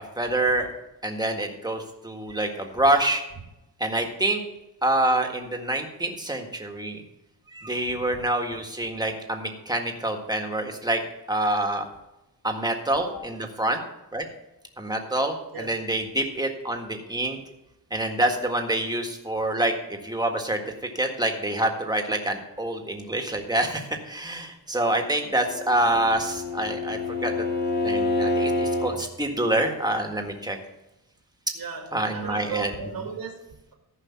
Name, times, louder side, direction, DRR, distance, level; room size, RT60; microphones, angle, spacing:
voice 1, 0.2-0.7 1.0-3.2 3.8-4.4 4.8-7.0 7.5-11.0 11.3-11.8 12.4-13.8 14.1-14.2 14.8-17.4 17.9-20.6 20.9-27.3 27.8-30.6 31.9-32.7, right 1 dB, 10° right, 3 dB, 1.7 m, -26 dB
voice 2, 7.9-8.2 13.0-13.2 15.5-15.8 31.5-33.7, right 5 dB, 65° right, 2 dB, 1.9 m, -37 dB
Bowed string instrument, 25.3-29.0, left 2 dB, 25° left, 1.5 m, -27 dB
14.5 x 5.5 x 5.8 m, 0.92 s
wide cardioid pair, 105°, 42 cm